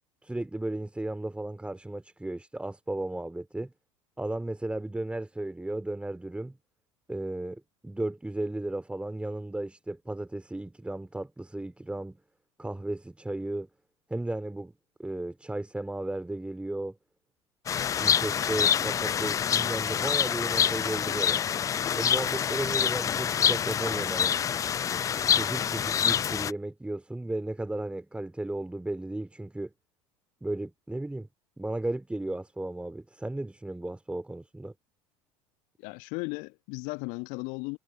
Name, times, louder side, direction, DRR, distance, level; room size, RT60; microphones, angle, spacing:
voice 1, 0.2-3.7 4.2-6.6 7.1-12.2 12.6-13.7 14.1-14.7 15.0-17.0 17.9-21.4 21.9-24.3 25.3-29.7 30.4-31.3 31.6-34.7, right 1 dB, 5° right, 4.2 m, -34 dB
sound 1, 17.7-26.5, left 8 dB, 20° left, 0.3 m, -26 dB
voice 2, 35.8-37.8, left 30 dB, 55° left, 1.6 m, -36 dB
figure-of-eight pair, 70°, 16 cm